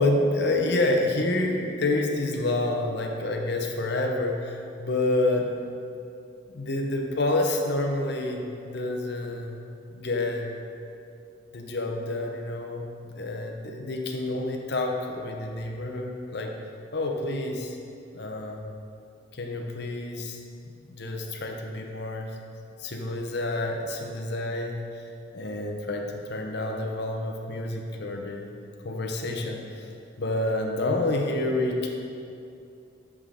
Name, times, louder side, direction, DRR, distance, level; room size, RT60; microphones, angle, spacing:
voice 1, 0.0-5.5 6.5-9.6 9.9-10.5 11.5-12.8 13.2-16.5 16.9-17.8 18.1-18.6 19.4-20.4 20.6-22.3 22.8-24.8 25.3-28.5 28.8-29.6 30.2-31.9, left 2 dB, 55° left, 2 dB, 0.7 m, -28 dB
7.8 x 3.7 x 4.9 m, 2.6 s
head